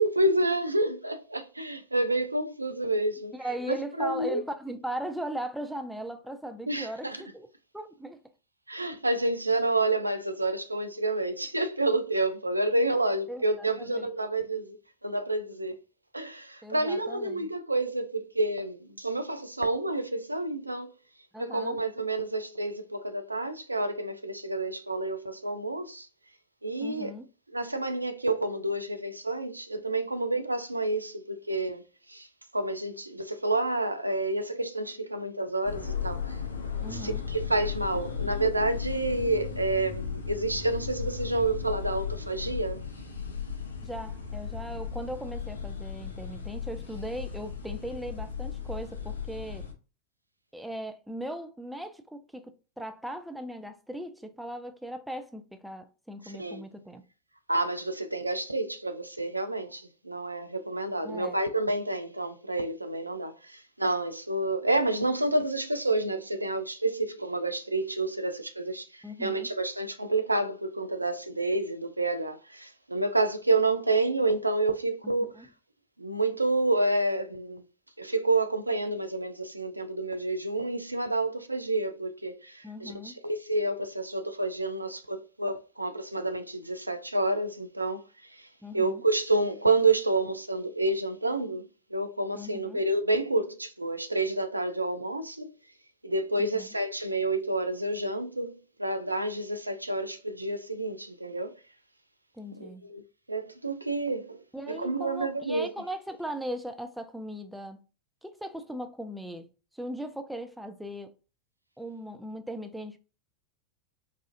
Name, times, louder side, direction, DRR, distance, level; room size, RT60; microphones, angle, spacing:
voice 1, 0.0-3.3 4.0-4.4 6.7-7.2 8.7-14.8 15.0-15.8 16.1-20.9 21.4-26.1 26.6-27.1 27.5-31.8 32.1-32.3 32.5-36.4 36.9-42.8 56.2-56.6 57.5-75.3 76.0-77.6 78.0-88.0 88.3-88.5 88.7-95.5 96.0-101.6 102.6-103.0 103.3-105.7, right 2 dB, 85° right, 0.4 m, -29 dB
voice 2, 3.3-7.5 7.7-8.2 13.3-14.1 16.6-17.5 21.3-21.8 26.8-27.3 36.8-37.2 43.8-49.7 50.5-57.0 61.0-61.4 69.0-69.5 75.3-75.5 82.6-83.2 88.6-89.0 92.3-92.8 96.4-96.7 102.3-102.8 104.5-107.8 108.2-111.2 111.8-113.0, right 1 dB, ahead, 0.4 m, -38 dB
sound 1, 35.6-49.7, left 7 dB, 70° left, 0.6 m, -36 dB
4.0 x 2.4 x 2.5 m
figure-of-eight pair, 90°, 0 cm